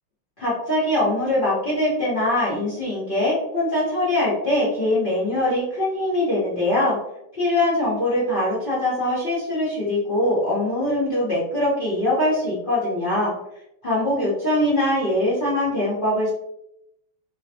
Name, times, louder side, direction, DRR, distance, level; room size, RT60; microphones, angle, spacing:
voice 1, 0.4-7.0 7.4-13.3 13.8-16.3, left 1 dB, 70° left, -9 dB, 0.5 m, -22 dB
3.7 x 2.1 x 2.7 m, 0.81 s
omnidirectional pair, 2.3 m